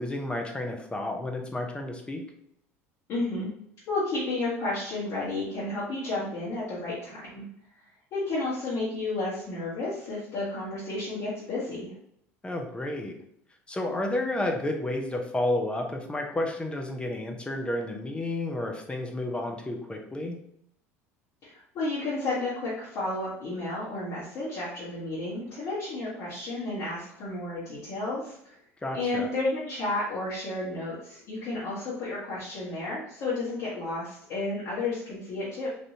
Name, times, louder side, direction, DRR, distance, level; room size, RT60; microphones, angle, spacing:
voice 1, 0.0-2.2 12.4-13.2 13.7-20.4 28.8-29.3, left 1 dB, 15° left, 2 dB, 0.7 m, -31 dB
voice 2, 3.1-3.5 3.9-7.4 8.1-11.9 21.4-28.5 28.9-35.7, left 2 dB, 50° left, -7 dB, 1.2 m, -32 dB
3.4 x 2.5 x 2.7 m, 0.71 s
hypercardioid pair, 70°, 8 cm